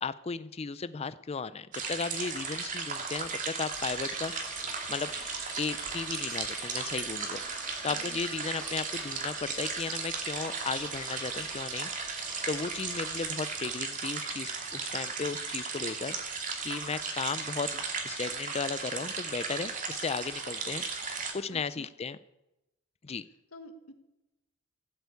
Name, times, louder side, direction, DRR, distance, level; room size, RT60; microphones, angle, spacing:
voice 1, 0.0-5.1 5.6-7.4 7.8-11.9 12.5-20.8 21.1-22.2 23.0-23.3, left 5 dB, 30° left, 15 dB, 0.4 m, -35 dB
sound 1, 1.7-21.3, right 5 dB, 40° right, 2.5 m, -36 dB
sound 2, 3.7-13.2, left 2 dB, 5° left, 3.0 m, -48 dB
voice 2, 7.8-8.2 21.5-21.9 23.5-23.9, left 1 dB, 85° left, 7 dB, 1.6 m, -49 dB
16.0 x 8.0 x 8.3 m, 0.95 s
head